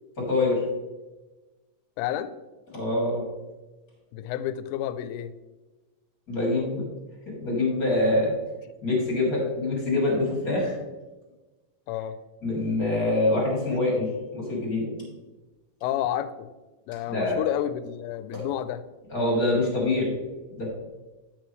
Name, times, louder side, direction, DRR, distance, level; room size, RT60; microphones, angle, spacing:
voice 1, 0.2-0.6 2.7-3.2 6.3-6.8 7.2-8.3 8.8-10.8 12.4-14.1 14.3-14.9 17.1-17.4 18.3-18.4 19.1-20.1 20.6-20.7, left 2 dB, 30° left, -3 dB, 1.7 m, -25 dB
voice 2, 2.0-2.4 4.1-5.4 11.9-12.2 15.8-16.5 16.9-18.8, left 11 dB, 85° left, 13 dB, 3.1 m, -30 dB
10.5 x 7.2 x 3.1 m, 1.2 s
omnidirectional pair, 5.7 m